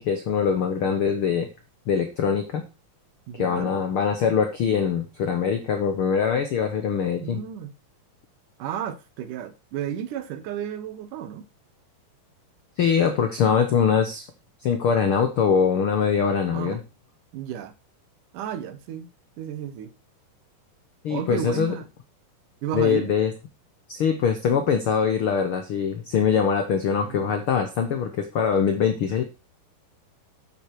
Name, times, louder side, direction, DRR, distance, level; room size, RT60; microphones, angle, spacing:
voice 1, 0.0-1.5 1.9-2.6 3.3-7.4 12.8-14.2 14.6-16.8 21.0-21.7 22.7-23.3 23.9-29.2, left 7 dB, 85° left, 1.2 m, -23 dB
voice 2, 3.3-3.7 7.2-7.7 8.6-11.5 16.5-16.8 17.3-17.7 18.3-19.1 19.4-19.9 21.1-21.9 22.6-23.1 27.0-27.4, right 10 dB, 70° right, 2.4 m, -33 dB
10.0 x 8.2 x 4.6 m
omnidirectional pair, 4.0 m